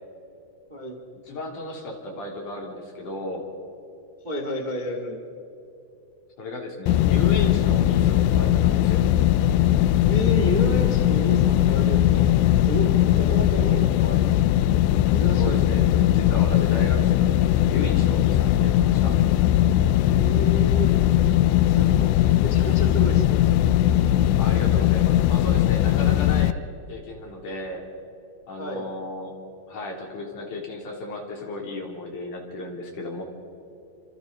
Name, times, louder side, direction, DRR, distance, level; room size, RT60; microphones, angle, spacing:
voice 1, 0.7-1.0 4.2-5.2 10.1-14.4 15.1-15.6 20.2-20.9 21.6-23.4 28.6-28.9, equal, 40° right, 2 dB, 0.6 m, -31 dB
voice 2, 1.3-3.5 6.4-9.0 15.3-19.1 24.4-26.5 26.9-27.9 28.5-29.3 29.7-33.2, left 2 dB, 50° left, 0 dB, 4.7 m, -34 dB
sound 1, 6.9-26.5, left 12 dB, 85° left, 2.7 m, -19 dB
29.5 x 26.5 x 4.2 m, 2.9 s
omnidirectional pair, 5.0 m